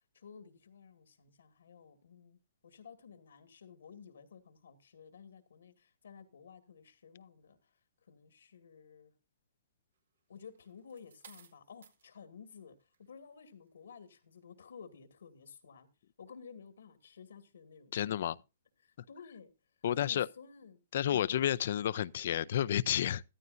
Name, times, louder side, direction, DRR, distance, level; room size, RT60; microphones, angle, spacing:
voice 1, 0.1-7.7 8.1-9.1 10.3-15.9 16.2-18.2 18.8-19.5 20.0-20.8 21.1-21.4, left 6 dB, 85° left, 2.2 m, -54 dB
sound 1, 10.3-12.1 12.8-13.1, right 6 dB, 85° right, 2.1 m, -58 dB
voice 2, 17.9-18.4 19.8-20.3 20.9-23.2, left 11 dB, 60° left, 0.6 m, -31 dB
14.0 x 13.5 x 2.6 m
hypercardioid pair, 155°, 0 cm